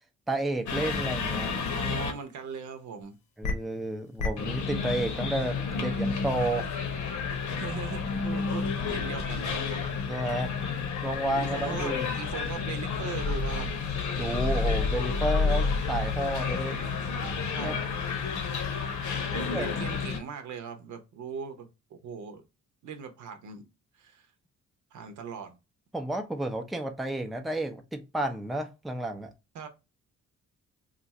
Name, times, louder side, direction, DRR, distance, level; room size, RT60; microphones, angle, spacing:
voice 1, 0.3-1.5 3.4-6.7 10.1-10.5 11.0-12.1 14.1-16.8 17.6-17.8 19.5-19.7 25.9-29.3, right 1 dB, ahead, 0.5 m, -31 dB
sound 1, 0.7-2.1 3.4-3.5 4.2-20.2, left 5 dB, 75° left, 0.9 m, -30 dB
voice 2, 1.7-3.2 5.9-6.0 7.5-9.9 11.4-13.7 17.5-17.8 19.3-22.4 22.8-23.7 24.0-24.3 24.9-25.6 29.5-29.7, right 6 dB, 75° right, 0.8 m, -39 dB
2.5 x 2.4 x 4.0 m
cardioid pair, 90°, 30 cm